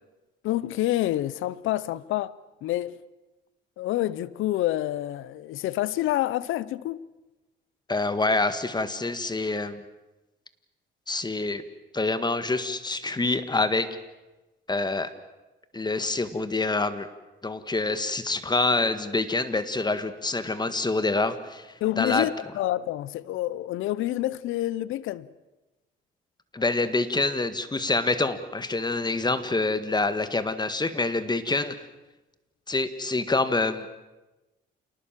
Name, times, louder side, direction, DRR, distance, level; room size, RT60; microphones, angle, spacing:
voice 1, 0.4-2.3 2.6-3.0 3.8-7.0 21.8-25.3, left 14 dB, 90° left, 0.8 m, -28 dB
voice 2, 7.9-9.8 11.1-11.6 11.9-13.9 14.7-15.1 15.7-17.1 17.4-21.7 22.0-22.3 26.5-31.8 32.7-33.9, left 3 dB, 20° left, 1.8 m, -26 dB
28.0 x 19.5 x 7.6 m
cardioid pair, 90°, 20 cm